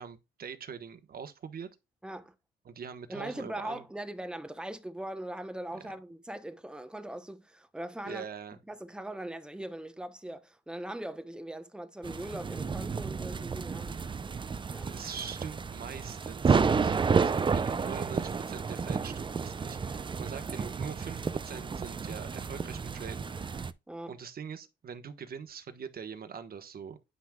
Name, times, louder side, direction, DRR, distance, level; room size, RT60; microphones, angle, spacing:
voice 1, 0.0-1.7 2.6-3.8 5.7-5.9 8.0-8.6 14.8-23.6 24.1-27.0, right 7 dB, 50° right, 1.2 m, -43 dB
voice 2, 2.0-2.3 3.1-8.2 8.7-14.0 14.7-15.0 23.9-24.1, right 1 dB, 5° right, 0.9 m, -40 dB
sound 1, 12.0-23.7, right 5 dB, 25° right, 0.5 m, -31 dB
9.8 x 5.9 x 2.3 m
cardioid pair, 90°, 20 cm